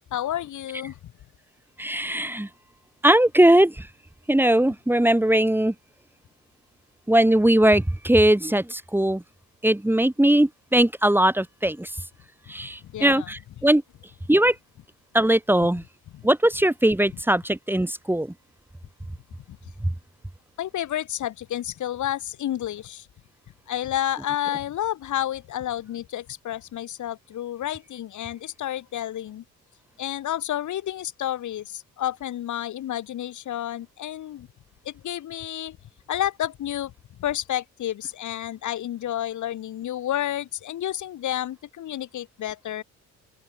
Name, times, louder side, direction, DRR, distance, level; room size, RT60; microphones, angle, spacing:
voice 1, 0.1-1.0 12.8-13.3 16.1-16.2 20.6-23.1 23.7-29.4 30.0-34.5 34.9-35.8 36.1-36.9 37.2-42.8, left 12 dB, 75° left, 5.3 m, -30 dB
voice 2, 1.8-2.5 3.0-3.8 4.3-5.7 7.1-9.2 9.6-11.9 12.5-13.8 14.3-14.5 15.1-15.8 16.2-18.3, right 1 dB, 5° right, 2.8 m, -20 dB
open air
cardioid pair, 90°, 30 cm